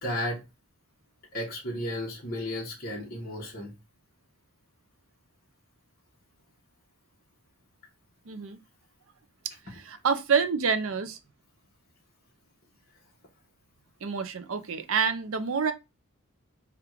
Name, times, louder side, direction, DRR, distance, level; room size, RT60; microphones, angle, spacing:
voice 1, 0.0-0.4 1.3-3.7, left 1 dB, 45° left, 1.2 m, -33 dB
voice 2, 8.3-8.6 9.7-11.2 14.0-15.7, right 6 dB, 65° right, 0.5 m, -27 dB
3.5 x 2.4 x 4.5 m
head